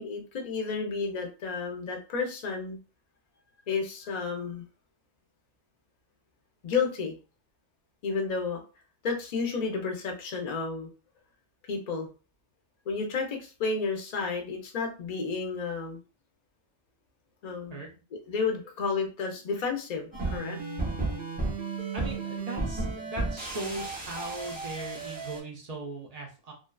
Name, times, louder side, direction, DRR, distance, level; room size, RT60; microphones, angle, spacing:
voice 1, 0.0-2.8 3.7-4.6 6.6-7.1 8.0-8.6 9.0-10.9 11.7-12.1 12.9-16.0 17.4-17.8 18.1-20.6, left 4 dB, 50° left, 2 dB, 0.5 m, -31 dB
voice 2, 17.7-18.0 21.9-26.5, right 2 dB, 50° right, 0 dB, 0.5 m, -39 dB
sound 1, 20.1-25.4, right 3 dB, 10° right, 0.7 m, -33 dB
2.6 x 2.2 x 2.2 m, 0.34 s
omnidirectional pair, 1.2 m